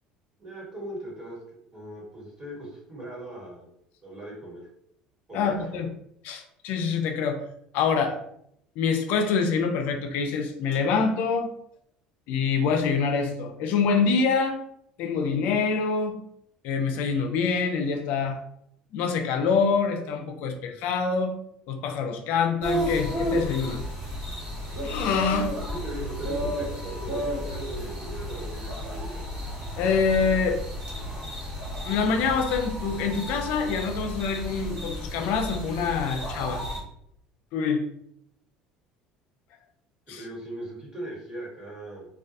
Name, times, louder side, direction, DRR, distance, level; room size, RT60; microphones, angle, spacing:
voice 1, 0.4-1.4 1.7-3.7 4.0-4.7 5.3-5.8 25.8-29.3 40.1-42.1, right 1 dB, 25° right, -4 dB, 1.4 m, -39 dB
voice 2, 5.3-5.9 6.2-7.4 7.7-8.2 8.8-11.5 12.3-14.6 15.0-16.2 16.6-18.4 18.9-21.3 21.7-23.8 24.8-25.5 29.8-30.6 31.9-36.6 37.5-37.8 40.1-40.2, left 5 dB, 70° left, 5 dB, 0.4 m, -25 dB
sound 1, 22.6-36.8, equal, 45° right, 1.2 m, -32 dB
2.2 x 2.2 x 2.6 m, 0.73 s
supercardioid pair, 80°, 3 cm